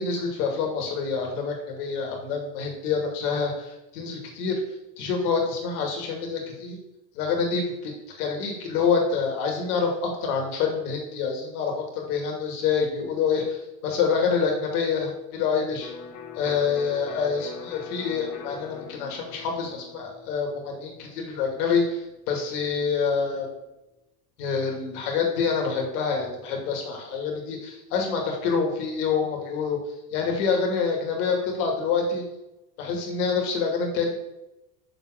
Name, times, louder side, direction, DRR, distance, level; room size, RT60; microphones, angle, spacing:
voice 1, 0.0-4.6 5.0-6.8 7.1-15.9 16.4-23.5 24.4-29.8 30.1-32.2 32.8-34.1, left 5 dB, 80° left, 1 dB, 2.4 m, -27 dB
Electric guitar, 15.8-23.5, left 5 dB, 65° left, 2.4 m, -43 dB
6.6 x 4.1 x 6.3 m, 0.93 s
supercardioid pair, 105°, 44 cm